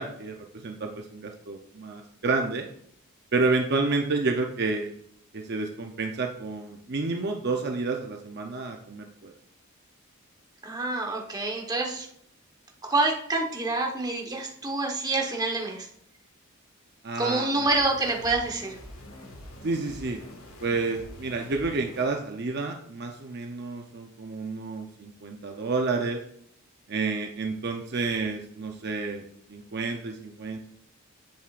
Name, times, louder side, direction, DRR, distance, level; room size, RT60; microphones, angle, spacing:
voice 1, 0.0-2.7 3.3-4.9 5.3-9.3 17.0-17.6 19.6-20.2 20.6-26.2 26.9-29.2 29.5-30.6, right 3 dB, 50° right, 2 dB, 0.7 m, -30 dB
voice 2, 10.6-12.1 12.9-15.9 17.2-18.8, right 2 dB, 20° right, 1 dB, 1.2 m, -27 dB
sound 1, 17.7-22.1, left 1 dB, 75° left, 1.6 m, -45 dB
10.5 x 7.6 x 2.5 m, 0.68 s
head